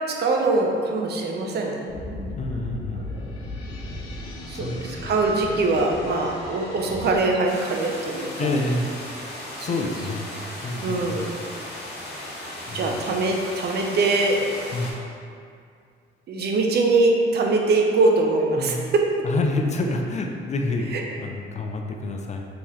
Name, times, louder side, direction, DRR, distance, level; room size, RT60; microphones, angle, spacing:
voice 1, 0.1-2.3 3.1-3.3 4.5-8.5 9.6-9.8 10.8-11.3 12.7-14.4 16.3-19.1 20.9-21.0, right 3 dB, 55° right, 1 dB, 0.5 m, -23 dB
sound 1, 1.9-7.2, left 1 dB, 85° left, 0.8 m, -36 dB
voice 2, 2.3-3.1 4.5-5.1 8.4-8.9 9.6-10.3 10.6-11.2 12.7-13.1 14.7-14.9 18.6-18.8 19.2-22.5, left 2 dB, 35° left, 2 dB, 0.4 m, -28 dB
sound 2, 7.4-14.9, left 1 dB, 55° left, 1.0 m, -37 dB
3.4 x 3.0 x 3.1 m, 2.3 s
cardioid pair, 90°, 20 cm